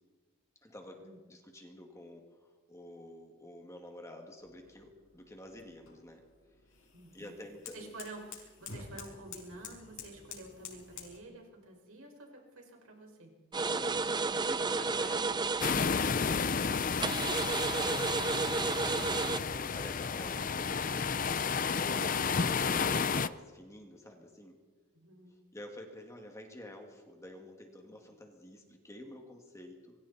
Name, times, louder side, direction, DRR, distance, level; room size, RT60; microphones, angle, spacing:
voice 1, 0.6-1.0 1.3-6.2 7.1-7.9 13.6-15.4 15.7-16.8 17.3-21.1 21.4-24.6 25.3-29.9, left 1 dB, 15° left, 2 dB, 2.3 m, -49 dB
sound 1, 4.4-11.2, left 6 dB, 70° left, 5.8 m, -50 dB
voice 2, 6.9-7.4 7.7-13.3 24.9-25.4 27.8-27.9, right 2 dB, 75° right, 1 dB, 5.3 m, -50 dB
sound 2, 13.5-15.9 17.0-19.4, right 4 dB, 20° right, 0.5 m, -32 dB
sound 3, 15.6-23.3, left 5 dB, 40° left, 0.6 m, -32 dB
27.0 x 23.0 x 4.3 m, 1.4 s
head